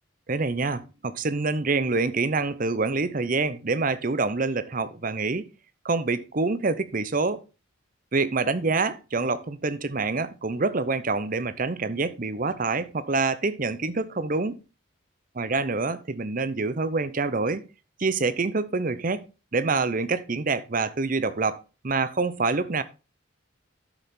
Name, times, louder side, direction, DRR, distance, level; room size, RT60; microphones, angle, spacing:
voice 1, 0.3-5.5 5.8-7.4 8.1-14.6 15.4-17.6 18.0-19.3 19.5-22.8, right 3 dB, 40° right, 0.7 m, -26 dB
12.0 x 6.9 x 3.7 m
head